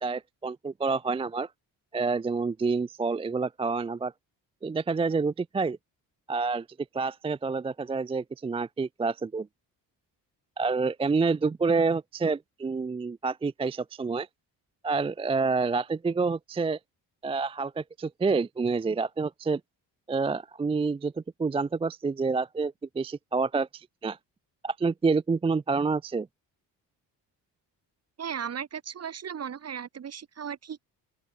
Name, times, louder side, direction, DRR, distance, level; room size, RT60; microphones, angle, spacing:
voice 1, 0.0-1.5 1.9-4.1 4.6-5.8 6.3-6.7 6.9-9.5 10.6-14.3 14.8-16.8 17.2-19.6 20.1-24.2 24.6-26.3, right 4 dB, 15° right, 0.3 m, -28 dB
voice 2, 28.2-30.8, right 8 dB, 35° right, 0.8 m, -36 dB
open air
supercardioid pair, 60°, 46 cm